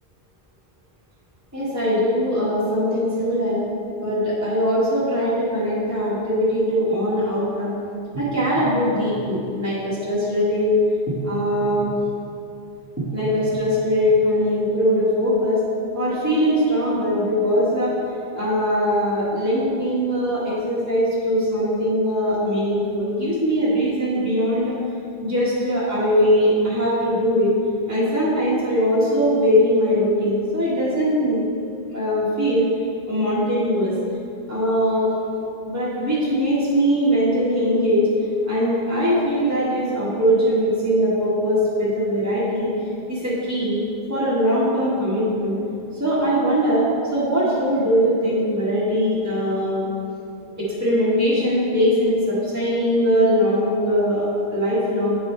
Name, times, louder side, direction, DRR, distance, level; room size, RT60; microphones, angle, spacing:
voice 1, 1.5-3.6 4.0-7.7 8.1-10.7 11.1-11.9 13.0-15.6 15.9-17.9 18.3-24.7 25.2-27.6 27.9-31.4 31.9-32.7 33.1-33.9 34.5-35.1 35.7-38.1 38.4-42.7 43.1-43.8 44.1-45.6 45.9-49.9 50.6-55.2, equal, 15° right, -10 dB, 1.5 m, -21 dB
9.0 x 3.5 x 4.2 m, 2.5 s
omnidirectional pair, 1.0 m